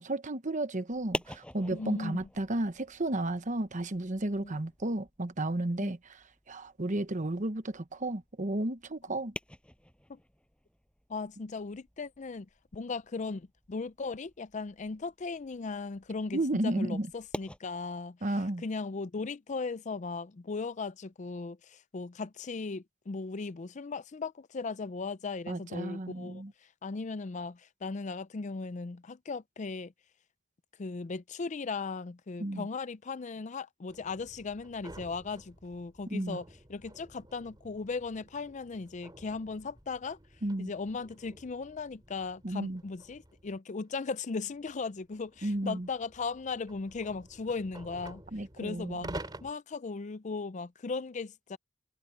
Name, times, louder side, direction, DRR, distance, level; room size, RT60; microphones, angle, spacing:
voice 1, 0.0-9.3 16.3-17.1 18.2-18.6 25.5-26.5 32.4-32.7 36.1-36.4 40.4-40.7 42.4-42.8 45.4-45.9 48.3-49.2, right 1 dB, 40° right, 1.1 m, -33 dB
sound 1, 0.9-17.6, left 1 dB, 5° left, 6.2 m, -47 dB
voice 2, 1.7-2.2 4.4-4.5 5.8-5.9 10.1-10.2 11.1-12.5 12.7-18.2 18.6-26.4 26.8-29.9 30.8-40.2 40.6-48.2 48.5-49.1 49.4-51.6, left 4 dB, 35° left, 0.5 m, -37 dB
sound 2, 33.9-43.6 44.3-49.5, right 1 dB, 20° right, 3.4 m, -50 dB
head